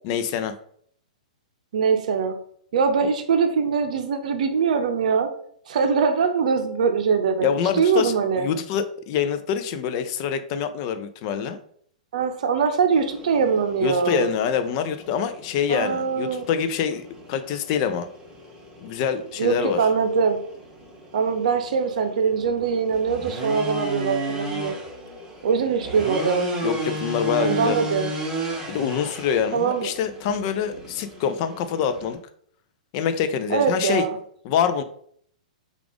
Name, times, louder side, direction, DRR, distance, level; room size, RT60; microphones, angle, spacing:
voice 1, 0.0-0.5 7.4-11.6 13.8-17.0 17.3-18.1 18.8-19.8 26.6-27.8 28.7-32.2 32.9-34.0 34.4-34.8, left 7 dB, 40° left, 9 dB, 0.4 m, -25 dB
voice 2, 1.7-2.4 2.7-5.3 5.7-7.5 7.8-8.5 12.1-14.3 15.7-16.4 19.4-20.4 21.1-24.7 25.4-26.5 27.4-28.1 29.5-29.9 33.5-34.2, right 6 dB, 65° right, 7 dB, 0.6 m, -22 dB
sound 1, 12.9-32.1, right 1 dB, 15° right, 1.3 m, -34 dB
4.8 x 2.4 x 3.4 m, 0.62 s
hypercardioid pair, 135°, 4 cm